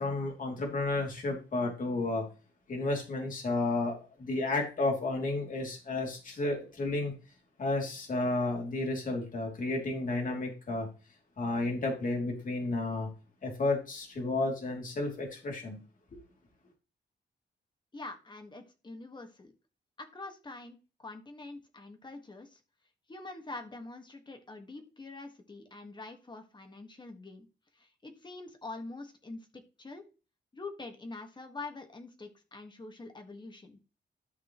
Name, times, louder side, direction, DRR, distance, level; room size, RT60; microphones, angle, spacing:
voice 1, 0.0-2.3 2.7-7.1 7.6-10.9 11.4-13.1 13.4-15.8, left 2 dB, 45° left, 3.1 m, -32 dB
voice 2, 17.9-19.5 20.0-22.6 23.1-27.5 27.7-30.1 30.5-33.8, left 3 dB, 25° left, 1.8 m, -45 dB
13.0 x 5.9 x 3.2 m
wide cardioid pair, 140°, 19 cm